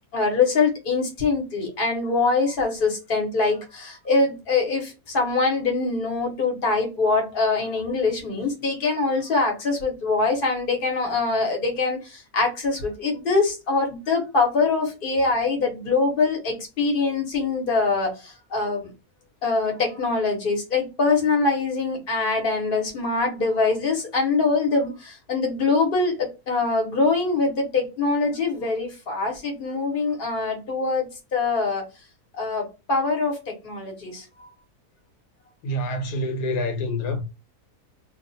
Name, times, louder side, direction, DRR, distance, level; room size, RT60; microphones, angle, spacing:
voice 1, 0.1-18.9 19.4-31.8 32.3-34.5, left 3 dB, 40° left, 1.0 m, -24 dB
voice 2, 35.6-37.2, left 1 dB, 75° left, 1.2 m, -27 dB
2.6 x 2.3 x 3.9 m
omnidirectional pair, 1.6 m